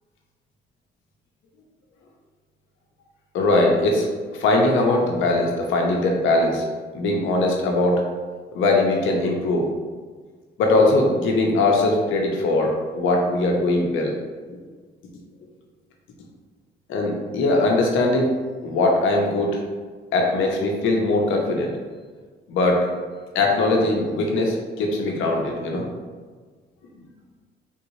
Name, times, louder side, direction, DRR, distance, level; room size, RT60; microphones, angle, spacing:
voice 1, 3.3-4.1 4.3-6.6 6.9-8.0 8.5-9.7 10.6-14.1 14.5-14.6 16.9-18.3 18.6-19.5 20.1-21.7 22.5-22.9 23.3-25.9, left 2 dB, 80° left, 0 dB, 0.7 m, -20 dB
3.6 x 2.6 x 3.0 m, 1.5 s
cardioid pair, 90°, 20 cm